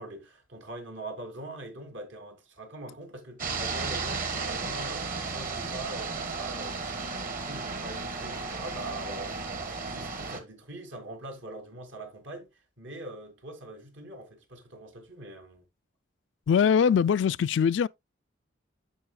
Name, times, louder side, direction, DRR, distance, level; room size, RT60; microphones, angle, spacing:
voice 1, 0.0-6.8 7.1-9.4 9.9-12.5 12.8-15.6, right 2 dB, 75° right, 2.7 m, -42 dB
sound 1, 3.4-10.4, right 4 dB, 45° right, 1.4 m, -34 dB
voice 2, 16.5-17.9, left 7 dB, 70° left, 0.3 m, -22 dB
13.5 x 4.7 x 2.2 m
head